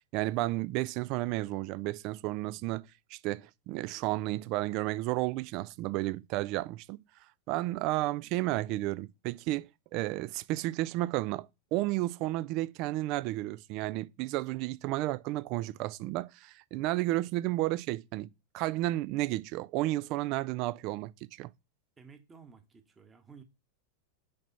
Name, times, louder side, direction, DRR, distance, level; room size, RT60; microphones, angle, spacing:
voice 1, 0.1-7.0 7.5-21.5, right 17 dB, 40° right, 0.3 m, -32 dB
voice 2, 22.0-23.4, right 5 dB, 15° right, 1.2 m, -54 dB
5.2 x 3.9 x 5.6 m
figure-of-eight pair, 90°, 0 cm